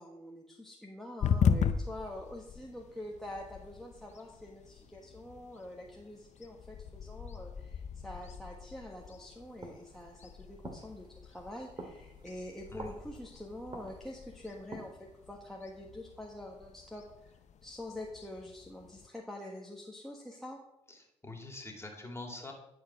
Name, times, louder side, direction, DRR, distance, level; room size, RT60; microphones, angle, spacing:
voice 1, 0.0-15.0 15.3-17.3 17.6-20.6, left 1 dB, ahead, -1 dB, 1.5 m, -45 dB
sound 1, 1.2-19.1, left 7 dB, 60° left, 0.7 m, -38 dB
sound 2, 9.0-15.2, right 2 dB, 35° right, 2.0 m, -51 dB
voice 2, 20.9-22.5, left 2 dB, 20° left, 2 dB, 2.7 m, -45 dB
11.0 x 4.7 x 6.0 m, 0.87 s
hypercardioid pair, 50°, 14 cm